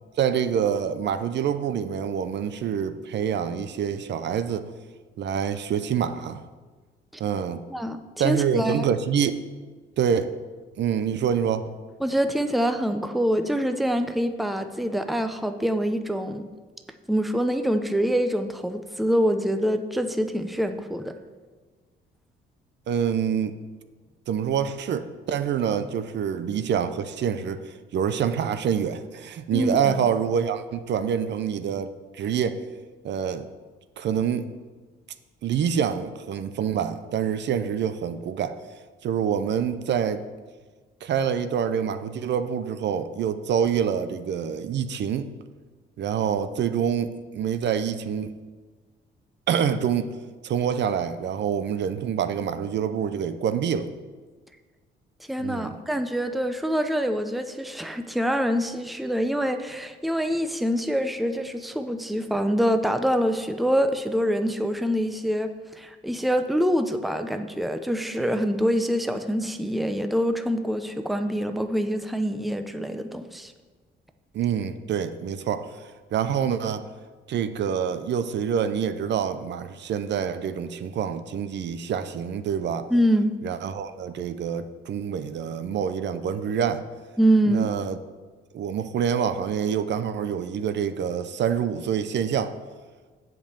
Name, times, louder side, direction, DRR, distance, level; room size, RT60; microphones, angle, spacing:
voice 1, 0.2-4.7 5.2-6.4 7.2-7.6 8.2-9.4 10.0-10.3 10.8-11.8 22.9-23.5 24.3-32.6 33.0-33.5 34.0-34.5 35.4-38.6 39.0-40.3 41.0-45.3 46.0-48.4 49.5-50.2 50.4-53.9 55.4-55.8 74.3-76.9 77.3-82.9 83.4-86.9 87.5-88.0 88.5-92.5, right 8 dB, 60° right, 11 dB, 0.6 m, -26 dB
voice 2, 8.2-8.9 12.0-16.5 17.1-21.1 29.5-30.0 55.3-73.5 82.9-83.3 87.2-87.7, equal, ahead, 7 dB, 0.6 m, -25 dB
7.8 x 5.3 x 6.9 m, 1.4 s
cardioid pair, 90°, 20 cm